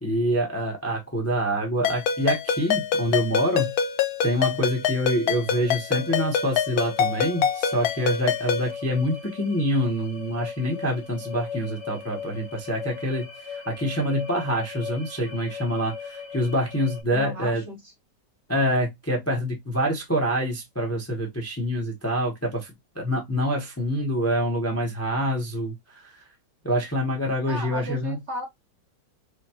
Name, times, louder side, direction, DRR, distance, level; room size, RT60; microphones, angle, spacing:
voice 1, 0.0-3.7 4.2-17.6 18.5-22.7 23.0-26.1 26.6-28.2, equal, 15° left, 0.6 m, -26 dB
Ringtone, 1.8-8.7, left 7 dB, 70° left, 1.0 m, -25 dB
sound 1, 5.5-17.0, left 6 dB, 45° left, 1.1 m, -39 dB
voice 2, 17.1-17.9 27.5-28.5, right 1 dB, 50° right, 1.0 m, -35 dB
5.0 x 2.3 x 2.7 m
omnidirectional pair, 1.9 m